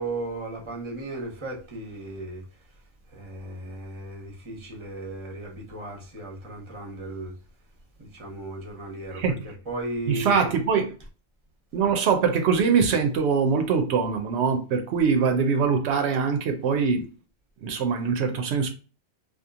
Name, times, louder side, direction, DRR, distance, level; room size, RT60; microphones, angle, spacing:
voice 1, 0.0-2.4 3.1-7.3 8.0-10.3, right 2 dB, 30° right, 0.8 m, -36 dB
voice 2, 10.1-10.9 11.7-17.1 17.6-18.7, right 5 dB, 90° right, 0.9 m, -23 dB
2.9 x 2.3 x 2.3 m
omnidirectional pair, 1.1 m